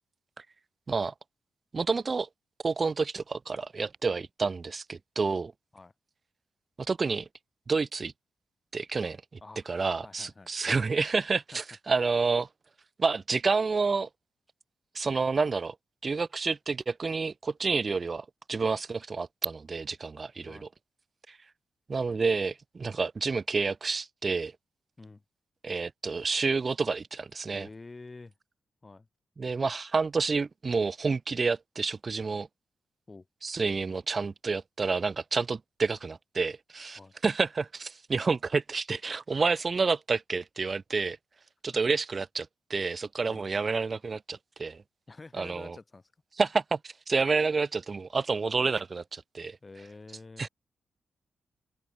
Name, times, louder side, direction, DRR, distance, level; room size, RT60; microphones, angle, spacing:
voice 1, 1.7-2.3 2.6-5.5 6.9-7.3 7.7-8.1 8.7-9.2 9.7-12.5 13.0-14.1 14.9-15.8 16.0-20.7 21.3-21.4 21.9-24.5 25.6-27.7 29.4-32.5 33.4-41.2 41.6-44.8 45.4-45.8 46.4-49.6 50.4-50.5, right 4 dB, 35° right, 0.3 m, -29 dB
voice 2, 10.0-10.5 11.5-11.6 20.5-20.7 25.0-25.2 27.5-28.3 28.8-29.1 33.1-33.3 37.0-37.1 43.2-43.5 45.1-46.1 49.6-50.5, left 3 dB, 20° left, 2.0 m, -48 dB
open air
wide cardioid pair, 140°, 0 cm